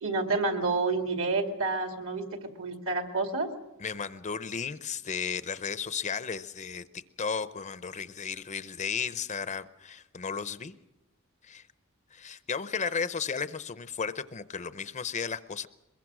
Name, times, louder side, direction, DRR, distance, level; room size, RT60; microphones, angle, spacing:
voice 1, 0.0-3.5, right 3 dB, 65° right, 5 dB, 2.4 m, -29 dB
voice 2, 3.8-10.8 11.4-11.7 12.1-15.7, left 6 dB, 35° left, 13 dB, 0.6 m, -34 dB
22.5 x 21.5 x 6.1 m, 0.97 s
head